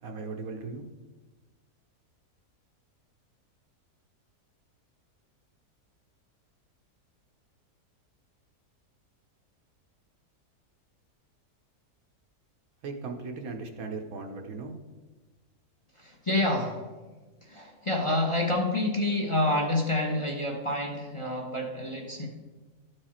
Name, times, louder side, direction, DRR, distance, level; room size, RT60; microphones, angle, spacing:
voice 1, 0.0-0.9 12.8-14.8, right 4 dB, 65° right, 4 dB, 1.2 m, -37 dB
voice 2, 15.9-16.8 17.4-22.3, left 1 dB, 20° left, 0 dB, 1.0 m, -28 dB
12.5 x 4.9 x 4.3 m, 1.3 s
omnidirectional pair, 1.7 m